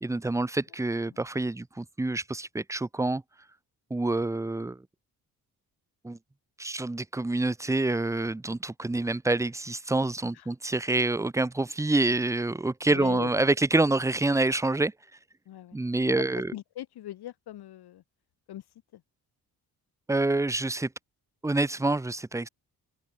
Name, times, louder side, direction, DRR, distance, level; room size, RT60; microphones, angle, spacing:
voice 1, 0.0-3.2 3.9-4.8 6.0-6.2 6.6-14.9 15.7-16.5 20.1-20.9 21.4-22.5, right 2 dB, 10° right, 0.7 m, -27 dB
voice 2, 12.9-13.3 15.5-15.8 16.2-16.3 16.5-18.0 18.5-19.0, left 13 dB, 85° left, 1.9 m, -41 dB
open air
cardioid pair, 85°, 38 cm